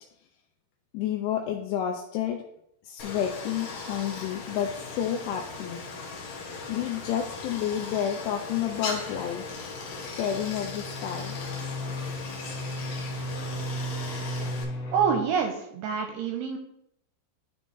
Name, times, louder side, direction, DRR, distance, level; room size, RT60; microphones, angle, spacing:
voice 1, 0.9-2.4 2.8-5.8 6.7-9.5 10.0-11.4, left 9 dB, 85° left, 2 dB, 2.7 m, -30 dB
Stream, 3.0-14.6, left 4 dB, 65° left, 2.3 m, -38 dB
sound 1, 8.2-15.2, equal, 45° left, 3.3 m, -36 dB
voice 2, 14.9-16.6, right 6 dB, 80° right, 4 dB, 2.4 m, -26 dB
10.5 x 3.7 x 3.9 m, 0.74 s
omnidirectional pair, 5.0 m